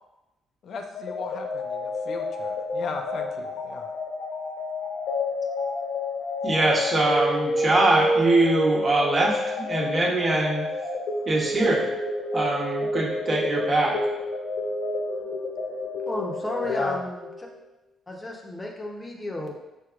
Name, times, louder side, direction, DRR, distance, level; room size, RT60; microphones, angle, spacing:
voice 1, 0.6-3.9 16.7-17.0, left 4 dB, 65° left, 4 dB, 0.5 m, -35 dB
sound 1, 0.9-17.5, left 1 dB, 90° left, 1.0 m, -29 dB
voice 2, 6.4-10.7 11.3-11.8 12.3-14.0, right 2 dB, 40° right, -3 dB, 1.2 m, -23 dB
voice 3, 16.1-17.3 18.1-19.5, left 1 dB, 20° left, -1 dB, 0.8 m, -32 dB
4.6 x 4.4 x 2.4 m, 0.99 s
cardioid pair, 90°, 0 cm